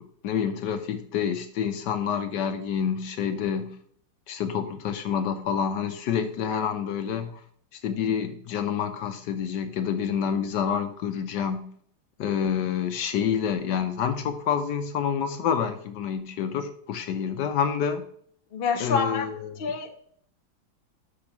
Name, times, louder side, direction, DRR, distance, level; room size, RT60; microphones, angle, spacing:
voice 1, 0.0-3.8 4.3-7.4 7.7-11.7 12.2-18.0 18.7-19.7, left 7 dB, 70° left, 9 dB, 1.1 m, -28 dB
voice 2, 18.5-19.3 19.6-20.0, left 5 dB, 50° left, 5 dB, 0.7 m, -27 dB
6.0 x 5.2 x 5.8 m, 0.62 s
omnidirectional pair, 2.1 m